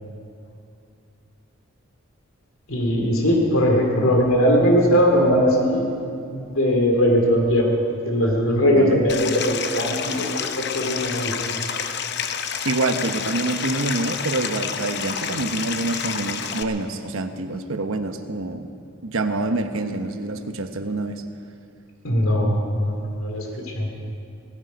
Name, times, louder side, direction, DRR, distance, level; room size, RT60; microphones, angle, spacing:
voice 1, 2.7-7.7 8.0-11.5 22.0-23.9, equal, 85° left, 1 dB, 2.6 m, -20 dB
Stream, 9.1-16.6, left 7 dB, 50° left, 0.7 m, -29 dB
voice 2, 12.6-18.7 19.0-21.2, right 2 dB, 80° right, 8 dB, 1.0 m, -26 dB
18.5 x 14.0 x 5.2 m, 2.6 s
head